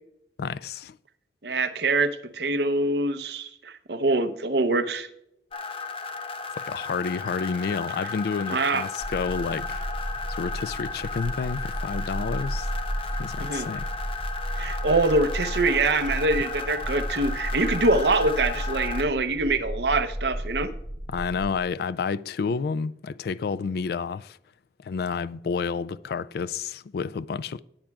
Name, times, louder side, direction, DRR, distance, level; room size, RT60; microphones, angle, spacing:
voice 1, 0.4-1.0 6.6-9.8 10.4-12.7 13.2-13.9 21.1-24.4 24.8-27.6, left 5 dB, 55° left, 0.3 m, -30 dB
voice 2, 1.4-5.1 8.5-8.8 13.4-13.7 14.6-20.7, right 2 dB, 65° right, 0.8 m, -24 dB
sound 1, 5.5-19.0, left 4 dB, 30° left, 0.7 m, -35 dB
sound 2, 9.0-21.5, equal, 30° right, 4.2 m, -33 dB
18.5 x 8.9 x 2.4 m
head